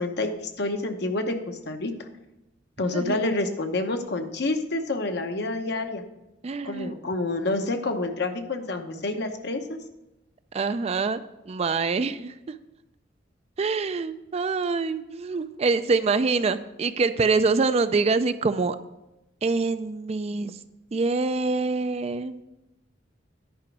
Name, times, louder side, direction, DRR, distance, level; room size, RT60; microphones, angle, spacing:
voice 1, 0.0-1.9 2.8-6.0 6.6-9.8, left 2 dB, 60° left, 6 dB, 0.9 m, -28 dB
voice 2, 6.4-6.9 10.5-11.2 11.5-12.3 13.6-18.8 19.4-20.6 20.9-22.4, right 4 dB, 35° right, 12 dB, 0.4 m, -25 dB
10.5 x 5.1 x 6.0 m, 0.95 s
head